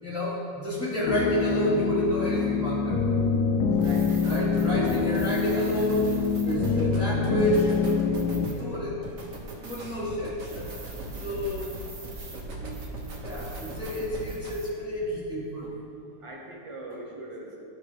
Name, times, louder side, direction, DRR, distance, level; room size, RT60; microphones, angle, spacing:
voice 1, 0.0-3.0 4.2-6.1 6.4-9.0 9.6-10.6 11.2-11.7 12.5-12.8 13.2-15.7, equal, 5° right, -10 dB, 1.1 m, -30 dB
sound 1, 1.1-8.5, left 5 dB, 80° left, 1.2 m, -25 dB
sound 2, 3.7-14.7, right 1 dB, 55° right, 1.4 m, -39 dB
voice 2, 3.8-4.4 11.6-11.7 16.2-17.5, right 2 dB, 35° right, -2 dB, 0.5 m, -42 dB
12.5 x 4.9 x 3.3 m, 2.6 s
omnidirectional pair, 2.0 m